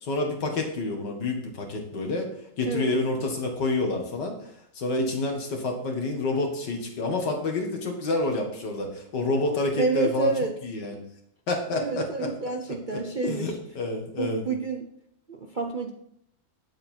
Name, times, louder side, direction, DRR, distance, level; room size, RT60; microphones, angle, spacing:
voice 1, 0.0-2.3 2.6-10.3 10.6-11.0 11.5-12.3 12.7-14.5, left 2 dB, 80° left, 2 dB, 2.5 m, -28 dB
voice 2, 2.6-2.9 9.8-10.5 11.8-13.5 14.2-14.9 15.3-15.9, right 3 dB, 45° right, 3 dB, 0.7 m, -28 dB
9.4 x 7.7 x 4.5 m, 0.71 s
omnidirectional pair, 1.8 m